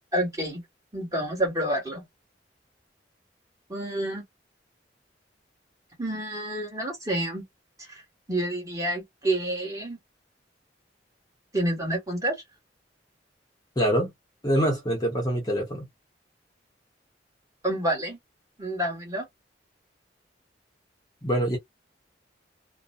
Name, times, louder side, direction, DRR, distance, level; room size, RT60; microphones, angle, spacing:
voice 1, 0.1-0.6 0.9-2.0 3.7-4.2 6.0-7.4 7.9-8.0 8.3-10.0 11.5-12.4 17.6-18.2 18.6-19.3, right 1 dB, 20° right, 1.4 m, -28 dB
voice 2, 13.8-14.1 14.4-15.9 21.2-21.6, equal, 20° left, 0.7 m, -24 dB
2.6 x 2.1 x 2.3 m
head